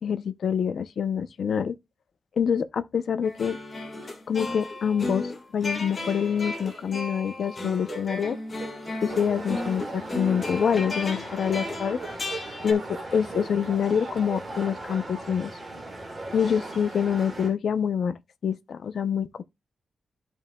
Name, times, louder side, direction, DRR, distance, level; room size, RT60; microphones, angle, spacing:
voice 1, 0.0-1.7 2.4-3.6 4.3-8.4 9.0-12.0 12.6-15.5 16.3-18.2 18.4-19.4, left 7 dB, 60° left, 0.6 m, -26 dB
sound 1, 3.2-12.7, left 2 dB, 30° left, 1.7 m, -35 dB
sound 2, 3.7-4.1 4.5-4.8 5.1-5.2 6.4-7.0 7.3-10.4 11.5-13.6 13.8-14.7, right 6 dB, 50° right, 0.7 m, -43 dB
sound 3, 9.1-17.5, right 2 dB, 15° right, 3.0 m, -38 dB
13.5 x 5.5 x 2.2 m
wide cardioid pair, 160°, 0 cm